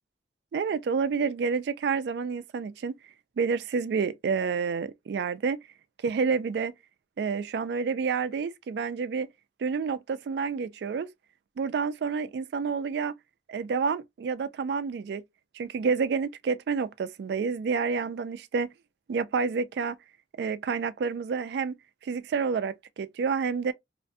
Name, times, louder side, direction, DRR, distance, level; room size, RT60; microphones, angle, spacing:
voice 1, 0.5-3.0 3.4-5.6 6.0-6.7 7.2-9.3 9.6-11.1 11.6-13.1 13.5-15.2 15.5-18.7 19.1-20.0 20.4-21.8 22.0-23.7, right 5 dB, 70° right, 0.3 m, -29 dB
2.4 x 2.1 x 2.5 m
head